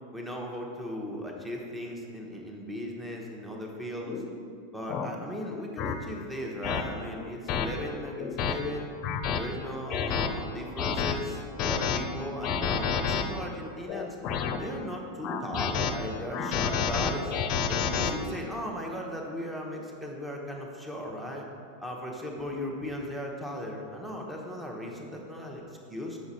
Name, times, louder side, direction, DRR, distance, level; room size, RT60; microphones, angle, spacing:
voice 1, 0.1-4.2 4.7-8.9 9.4-14.2 14.6-17.3 17.7-21.4 21.8-25.6 25.9-26.2, equal, 5° right, 0 dB, 1.0 m, -37 dB
sound 1, 4.1-4.2 4.9-5.1 5.8-5.9 6.6-6.8 7.5-7.7 8.2-8.5 9.0-9.4 9.9-10.3 10.8-11.1 11.6-12.0 12.4-13.2 13.9-14.6 15.2-15.9 16.3-18.1, left 7 dB, 45° left, 0.6 m, -29 dB
6.2 x 4.7 x 4.2 m, 2.3 s
hypercardioid pair, 105°, 0 cm